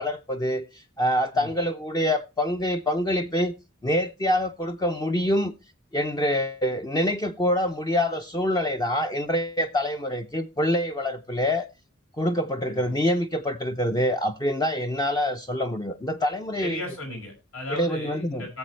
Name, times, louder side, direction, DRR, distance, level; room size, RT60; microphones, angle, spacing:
voice 1, 0.0-3.5 3.8-5.5 5.9-11.7 12.2-16.8 17.7-18.4, left 1 dB, 20° left, 0.5 m, -26 dB
voice 2, 12.7-13.0 16.6-18.6, left 1 dB, 80° left, 5.6 m, -36 dB
18.0 x 7.4 x 3.2 m
head